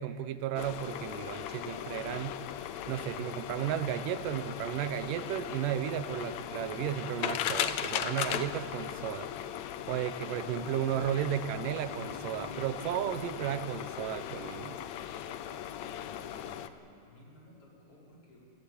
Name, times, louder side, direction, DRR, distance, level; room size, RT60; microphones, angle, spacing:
voice 1, 0.0-2.4 2.9-9.3 9.9-14.8, right 11 dB, 75° right, 13 dB, 2.3 m, -34 dB
sound 1, 0.6-16.7, left 10 dB, 75° left, 1.7 m, -38 dB
voice 2, 16.1-18.4, equal, 40° left, -4 dB, 6.1 m, -57 dB
28.0 x 15.0 x 8.7 m, 2.6 s
omnidirectional pair, 4.0 m